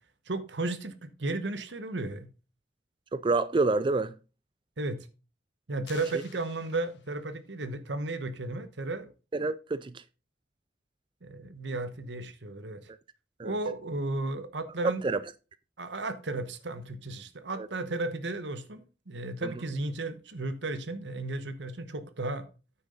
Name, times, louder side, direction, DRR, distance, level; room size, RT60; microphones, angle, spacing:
voice 1, 0.3-2.3 4.8-5.1 5.7-9.1 11.2-12.9 13.4-15.0 15.8-22.5, right 2 dB, 90° right, 1.1 m, -34 dB
voice 2, 3.1-4.1 9.3-10.0 13.4-13.5 15.0-15.2 17.5-17.7 19.4-19.5, right 3 dB, 30° right, 0.3 m, -28 dB
sound 1, 5.9-7.4, left 6 dB, 85° left, 1.9 m, -52 dB
9.1 x 6.6 x 3.8 m
head